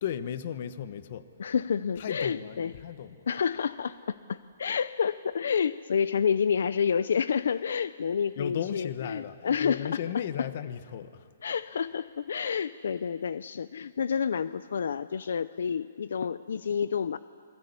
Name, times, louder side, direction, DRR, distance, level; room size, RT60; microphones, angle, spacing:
voice 1, 0.0-1.3 2.0-3.3 8.4-11.3, left 9 dB, 45° left, 12 dB, 1.2 m, -35 dB
voice 2, 1.4-2.7 3.3-9.9 11.4-17.2, left 7 dB, 70° left, 15 dB, 0.6 m, -29 dB
28.0 x 22.0 x 9.7 m, 2.3 s
hypercardioid pair, 170°, 0 cm